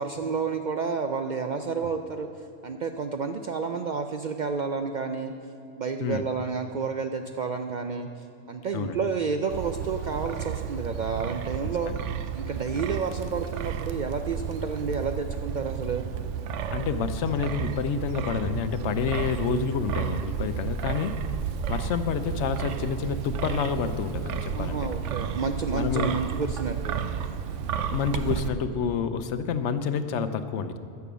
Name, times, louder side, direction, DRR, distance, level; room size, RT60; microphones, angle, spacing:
voice 1, 0.0-2.3 2.6-5.3 5.8-11.9 12.3-16.1 24.5-27.0, right 5 dB, 60° right, 6 dB, 0.5 m, -30 dB
Wind, 9.5-28.5, right 7 dB, 80° right, 0.9 m, -32 dB
voice 2, 16.7-21.1 21.7-24.9 25.7-26.2 27.9-30.8, left 6 dB, 75° left, 11 dB, 0.9 m, -28 dB
13.5 x 7.0 x 6.2 m, 2.6 s
omnidirectional pair, 1.2 m